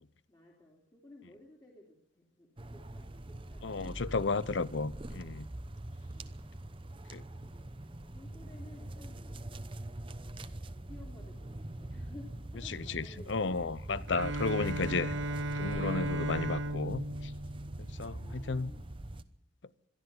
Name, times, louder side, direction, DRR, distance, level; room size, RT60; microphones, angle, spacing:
voice 1, 0.3-4.6 4.9-5.1 6.1-6.5 7.3-9.5 10.8-14.2 18.2-18.8, left 1 dB, 20° left, 2.8 m, -56 dB
sound 1, 2.6-19.2, right 1 dB, 25° right, 0.8 m, -43 dB
voice 2, 3.6-5.5 7.1-7.2 12.7-15.1 15.5-17.3 18.0-18.7, left 3 dB, 65° left, 0.7 m, -33 dB
Bowed string instrument, 14.1-18.2, right 1 dB, 70° right, 1.0 m, -35 dB
22.0 x 13.0 x 9.6 m
head